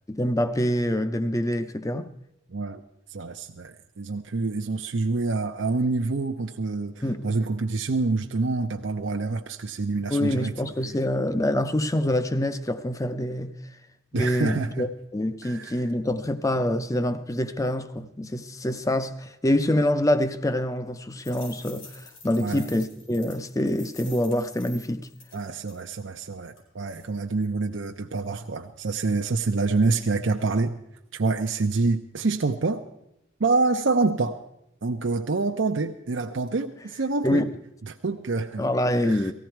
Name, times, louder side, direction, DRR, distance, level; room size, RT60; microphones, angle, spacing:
voice 1, 0.1-2.1 7.0-7.3 10.1-13.6 14.1-25.1 37.2-37.5 38.6-39.3, left 1 dB, 15° left, 0.6 m, -26 dB
voice 2, 2.5-2.8 3.1-10.5 14.1-14.9 15.4-15.8 22.4-22.6 25.3-30.8 31.1-32.8 33.4-34.4 34.8-37.5 37.9-38.7 39.1-39.2, right 3 dB, 65° right, 0.6 m, -27 dB
sound 1, 21.1-25.9 26.6-26.7 26.9-27.1, left 3 dB, 90° left, 4.9 m, -48 dB
18.5 x 14.5 x 4.5 m
head